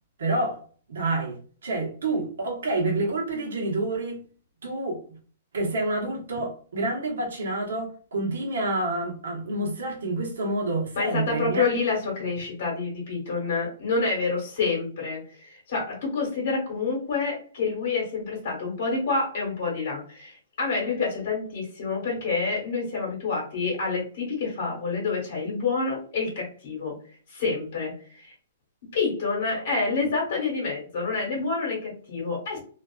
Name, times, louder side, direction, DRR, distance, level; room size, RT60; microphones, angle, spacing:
voice 1, 0.2-0.6 0.9-4.2 4.6-5.0 5.5-11.8, right 2 dB, 85° right, 0.9 m, -28 dB
voice 2, 11.0-26.9 27.3-28.3 28.9-32.6, left 4 dB, 60° left, 1.1 m, -28 dB
2.5 x 2.4 x 2.3 m
hypercardioid pair, 160°, 0 cm